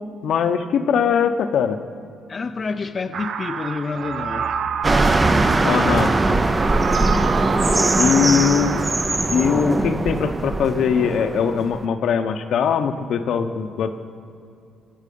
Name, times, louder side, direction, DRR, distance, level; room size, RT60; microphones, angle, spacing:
voice 1, 0.2-1.8 5.6-6.1 8.0-8.9 9.3-13.9, left 7 dB, 70° left, 8 dB, 0.8 m, -21 dB
voice 2, 2.3-4.5 7.5-8.0, left 4 dB, 35° left, 7 dB, 0.5 m, -29 dB
sound 1, 3.1-9.2, right 7 dB, 65° right, 0.6 m, -28 dB
sound 2, 4.8-11.9, right 2 dB, 20° right, 0.6 m, -20 dB
20.0 x 7.5 x 5.3 m, 2.5 s
cardioid pair, 90°, 0 cm